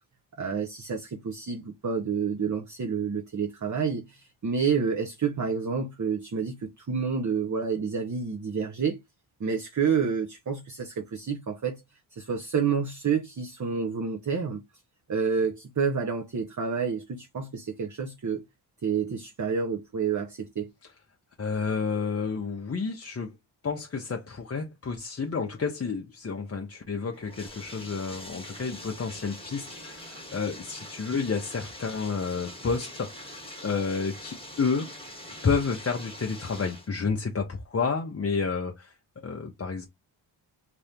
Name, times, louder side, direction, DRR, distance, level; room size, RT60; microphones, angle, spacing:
voice 1, 0.4-9.0 9.4-11.8 12.1-14.6 15.1-18.4 18.8-20.7, right 6 dB, 35° right, 0.8 m, -29 dB
voice 2, 21.4-23.4 23.6-34.9 35.4-39.9, left 5 dB, 30° left, 0.6 m, -30 dB
Bathtub (filling or washing), 27.1-36.9, left 1 dB, 10° left, 1.3 m, -43 dB
2.8 x 2.6 x 3.4 m
cardioid pair, 55°, 49 cm